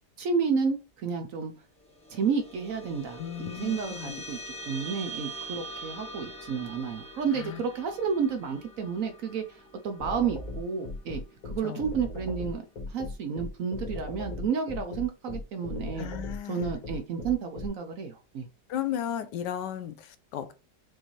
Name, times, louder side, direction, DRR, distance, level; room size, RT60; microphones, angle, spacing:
voice 1, 0.2-1.5 2.1-4.4 4.7-12.6 12.9-16.1 16.5-18.5, right 6 dB, 60° right, 6 dB, 0.9 m, -31 dB
sound 1, 1.8-12.6, right 2 dB, 5° left, 0.5 m, -44 dB
voice 2, 3.2-4.2 7.4-7.6 11.6-11.8 16.0-16.7 18.7-20.5, left 10 dB, 85° left, 11 dB, 1.3 m, -35 dB
sound 2, 10.0-17.7, left 2 dB, 60° left, 2.0 m, -37 dB
6.2 x 2.6 x 3.0 m, 0.32 s
omnidirectional pair, 1.8 m